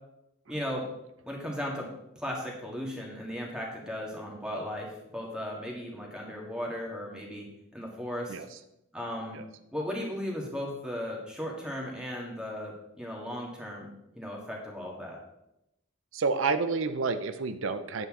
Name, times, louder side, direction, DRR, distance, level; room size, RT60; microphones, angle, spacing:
voice 1, 0.5-0.8 1.2-1.9 2.1-7.5 7.7-8.4 8.9-9.4 9.7-15.2, equal, 5° right, -2 dB, 1.7 m, -36 dB
voice 2, 16.1-18.1, right 4 dB, 65° right, 10 dB, 0.5 m, -29 dB
9.6 x 7.9 x 3.7 m, 0.87 s
head